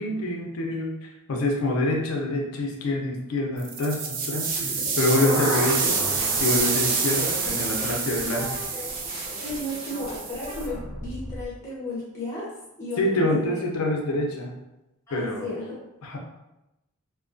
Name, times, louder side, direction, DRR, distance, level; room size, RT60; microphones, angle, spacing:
voice 1, 0.0-5.9 6.4-8.5 13.0-14.6 15.1-15.5 16.0-16.2, left 1 dB, 85° left, 1 dB, 0.5 m, -26 dB
sound 1, 3.6-10.7, right 5 dB, 40° right, 0.4 m, -28 dB
sound 2, 4.5-10.5 10.9-11.0, equal, 75° right, 0.9 m, -35 dB
sound 3, 5.9-6.7 7.0-11.5, equal, 25° right, 0.7 m, -39 dB
voice 2, 8.4-8.9 9.4-12.5 12.8-13.6 15.1-15.7, left 1 dB, 15° left, -7 dB, 0.6 m, -34 dB
2.2 x 2.2 x 2.5 m, 0.95 s
head